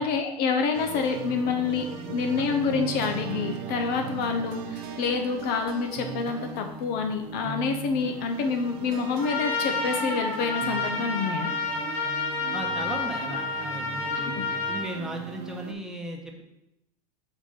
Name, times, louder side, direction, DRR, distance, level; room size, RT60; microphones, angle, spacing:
voice 1, 0.0-11.5 14.2-14.3, left 5 dB, 50° left, 5 dB, 0.7 m, -27 dB
sound 1, 0.7-15.7, right 7 dB, 60° right, 0.7 m, -38 dB
Trumpet, 9.2-14.9, left 3 dB, 85° left, 2.3 m, -30 dB
voice 2, 12.5-16.4, right 1 dB, ahead, 0 dB, 1.0 m, -36 dB
5.0 x 3.5 x 5.5 m, 0.85 s
hypercardioid pair, 90°, 21 cm